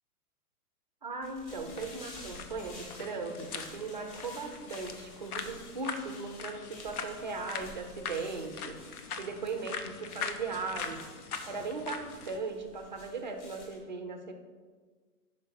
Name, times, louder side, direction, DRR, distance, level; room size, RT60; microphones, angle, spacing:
voice 1, 1.0-11.0 11.5-14.3, right 4 dB, 35° right, 6 dB, 0.4 m, -38 dB
sound 1, 1.2-13.8, left 1 dB, 20° left, 1.5 m, -52 dB
sound 2, 1.7-12.4, left 6 dB, 70° left, 0.8 m, -42 dB
5.4 x 4.7 x 6.0 m, 1.5 s
hypercardioid pair, 160°, 47 cm